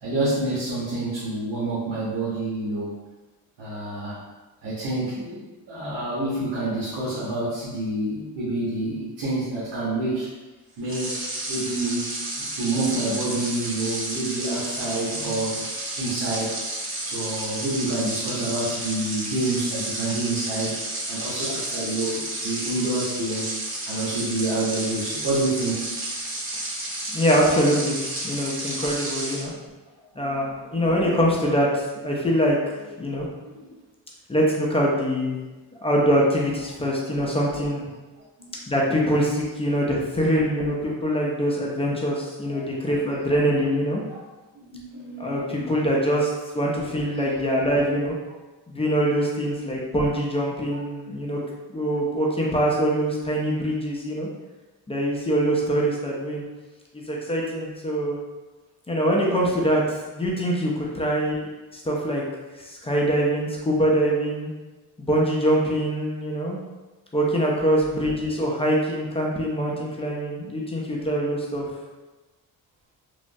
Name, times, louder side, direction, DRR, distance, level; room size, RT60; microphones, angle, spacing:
voice 1, 0.0-3.0 3.6-4.1 4.6-5.4 5.7-10.3 10.8-11.2 11.5-12.1 12.4-15.6 16.0-16.5 17.0-20.8 21.1-23.5 23.9-25.9 30.2-30.3 33.5-33.6 38.4-38.5 42.5-42.6 44.1-44.2 44.5-45.7, right 2 dB, 80° right, -9 dB, 0.9 m, -28 dB
sound 1, 10.8-29.5, right 1 dB, 35° right, 0.7 m, -31 dB
voice 2, 27.1-28.0 28.2-29.5 30.2-32.6 33.0-33.3 34.3-35.4 35.8-37.8 38.7-44.0 45.2-48.2 48.7-51.4 51.7-54.3 54.9-56.4 56.9-58.2 58.9-62.2 62.6-64.5 65.0-66.6 67.1-71.6, equal, 15° left, -3 dB, 0.4 m, -24 dB
3.2 x 2.0 x 2.6 m, 1.2 s
cardioid pair, 115°, 39 cm